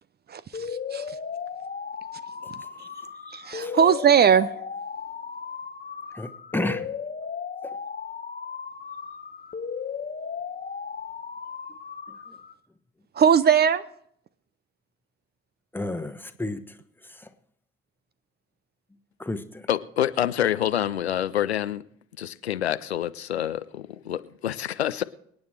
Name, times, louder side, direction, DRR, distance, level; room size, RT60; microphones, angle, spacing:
sound 1, 0.5-12.5, left 6 dB, 25° left, 1.1 m, -36 dB
voice 1, 3.3-4.5 13.2-13.8, right 7 dB, 30° right, 0.6 m, -19 dB
voice 2, 6.1-6.9 7.6-7.8 12.1-12.4 15.7-17.3 19.2-19.7, left 2 dB, 5° left, 1.3 m, -33 dB
voice 3, 19.7-21.8 22.2-25.0, left 11 dB, 85° left, 0.5 m, -27 dB
25.5 x 9.5 x 3.3 m
figure-of-eight pair, 50°, 31 cm